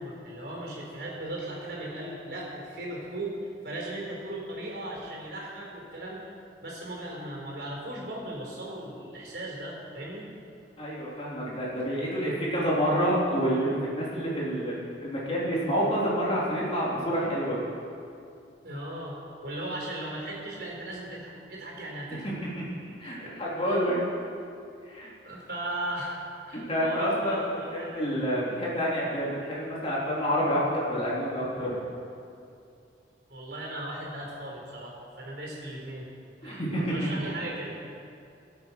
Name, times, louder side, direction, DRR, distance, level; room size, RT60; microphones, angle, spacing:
voice 1, 0.0-3.3 3.6-6.3 6.6-10.3 18.6-22.3 23.0-23.1 23.6-23.8 25.2-26.2 26.5-28.0 33.3-36.1 36.4-37.8, right 1 dB, 60° right, -2 dB, 4.1 m, -37 dB
voice 2, 10.8-14.7 15.0-17.6 22.2-22.6 23.0-24.0 24.8-25.1 26.5-27.4 27.7-31.8 36.4-37.1, equal, 30° left, -7 dB, 3.5 m, -28 dB
19.0 x 8.2 x 6.0 m, 2.5 s
head